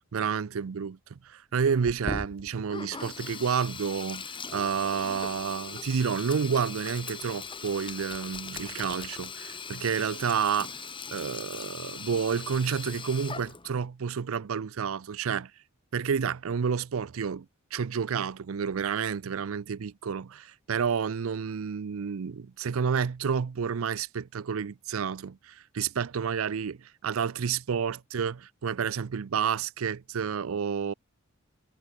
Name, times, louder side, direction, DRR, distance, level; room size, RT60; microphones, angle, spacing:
voice 1, 0.1-10.7 11.1-15.5 15.9-17.5 17.7-30.9, right 6 dB, 70° right, 0.5 m, -30 dB
Sink (filling or washing), 1.8-13.9, left 4 dB, 25° left, 1.9 m, -40 dB
head